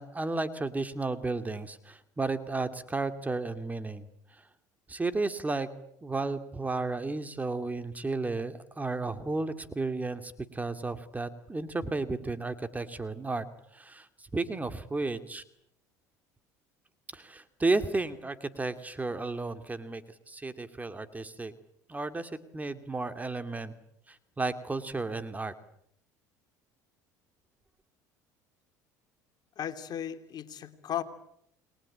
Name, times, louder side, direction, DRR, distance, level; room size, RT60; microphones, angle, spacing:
voice 1, 0.0-4.1 4.9-5.7 6.0-13.4 13.7-14.1 14.3-15.4 17.1-21.5 21.9-23.7 24.1-25.5, right 3 dB, 15° right, 10 dB, 2.5 m, -33 dB
voice 2, 29.6-31.0, left 10 dB, 50° left, 9 dB, 2.8 m, -35 dB
29.0 x 22.0 x 8.8 m, 0.74 s
hypercardioid pair, 75°, 9 cm